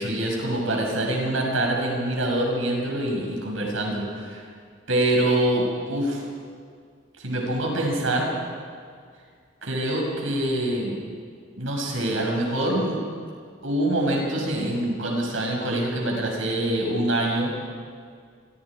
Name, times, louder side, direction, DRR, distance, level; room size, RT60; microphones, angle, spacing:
voice 1, 0.0-4.4 4.9-6.2 7.2-8.4 9.6-11.0 11.6-13.0 13.6-17.5, right 1 dB, 85° right, 0 dB, 6.6 m, -25 dB
28.5 x 24.5 x 5.0 m, 2.1 s
head